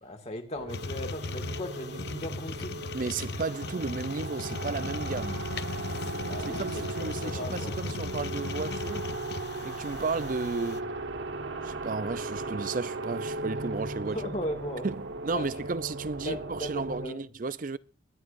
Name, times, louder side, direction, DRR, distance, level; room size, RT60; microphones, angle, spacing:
voice 1, 0.0-2.9 6.2-7.7 14.0-14.9 15.3-15.5 16.2-17.2, left 1 dB, 35° left, 2.2 m, -37 dB
sound 1, 0.5-17.1, right 2 dB, 85° right, 1.3 m, -37 dB
sound 2, 0.7-10.8, left 3 dB, 60° left, 0.7 m, -37 dB
voice 2, 2.9-5.5 6.5-9.1 9.6-10.9 11.6-14.2 14.8-17.8, right 4 dB, 45° right, 0.5 m, -33 dB
24.0 x 10.5 x 2.6 m
head